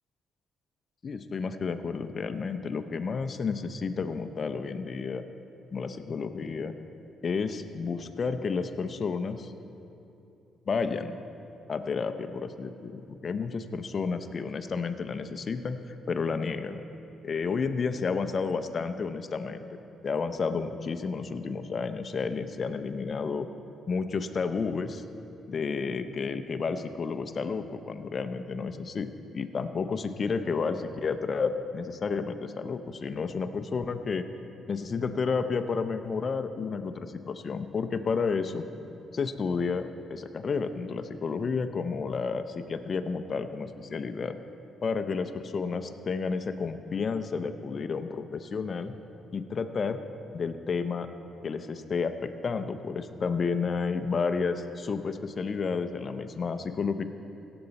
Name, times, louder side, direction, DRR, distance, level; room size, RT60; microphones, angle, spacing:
voice 1, 1.0-5.2 5.7-6.7 7.2-9.5 10.7-11.2 11.7-16.8 17.2-23.5 23.9-25.0 25.5-29.1 29.3-34.2 34.7-38.6 39.1-44.4 44.8-48.9 49.3-50.0 50.3-51.1 51.4-57.0, left 5 dB, 45° left, 9 dB, 0.6 m, -31 dB
17.0 x 7.9 x 4.1 m, 2.9 s
cardioid pair, 90°, 0 cm